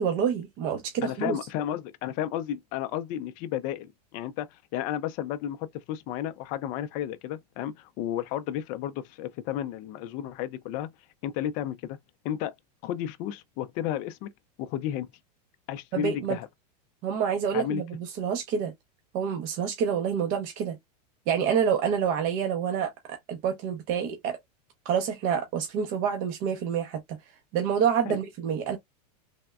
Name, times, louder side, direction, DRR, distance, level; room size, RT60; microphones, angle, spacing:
voice 1, 0.0-1.4 15.9-16.4 17.0-18.7 19.1-20.8 21.3-22.9 23.3-24.4 24.9-27.2 27.5-28.8, right 7 dB, 40° right, 0.6 m, -27 dB
voice 2, 1.0-10.9 11.2-12.0 12.2-12.5 12.8-14.3 14.6-15.1 15.7-16.5 17.5-17.8 28.1-28.2, left 11 dB, 40° left, 0.4 m, -32 dB
3.4 x 2.1 x 2.2 m
supercardioid pair, 145°, 21 cm